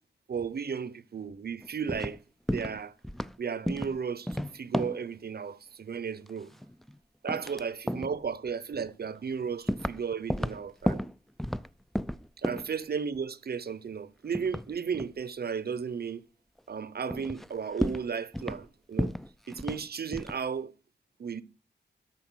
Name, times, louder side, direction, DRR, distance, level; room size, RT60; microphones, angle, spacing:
voice 1, 0.3-2.2 2.5-2.9 3.4-6.5 7.2-11.1 12.4-16.2 16.7-19.1 19.5-20.7 21.2-21.4, right 6 dB, 60° right, 0.8 m, -34 dB
sound 1, 1.6-2.2 2.5-2.8 3.0-3.3 3.7-4.0 4.3-5.1 6.3-7.0 7.3-7.6 7.9-8.2 8.9-9.0 9.7-10.0 10.3-11.7 11.9-12.7 14.3-15.1 16.6-16.7 17.1-17.5 17.8-18.7 19.0-19.9 20.1-20.4, equal, ahead, 0.4 m, -32 dB
13.0 x 5.7 x 6.2 m
cardioid pair, 70°, 19 cm